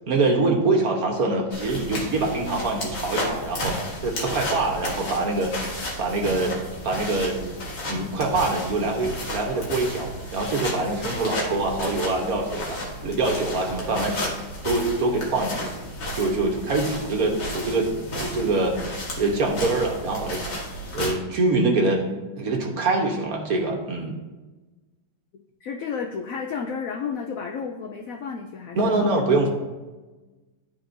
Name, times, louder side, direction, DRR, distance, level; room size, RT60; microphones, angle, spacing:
voice 1, 0.1-6.6 6.8-7.4 7.8-14.3 14.6-15.7 16.1-17.9 18.2-20.6 20.9-22.0 22.4-24.2 28.7-29.5, right 2 dB, 55° right, 1 dB, 1.4 m, -24 dB
sound 1, 1.5-21.1, left 1 dB, 70° left, 2.1 m, -33 dB
voice 2, 25.6-29.3, left 6 dB, 90° left, 3 dB, 0.7 m, -32 dB
11.5 x 4.2 x 2.6 m, 1.2 s
omnidirectional pair, 2.0 m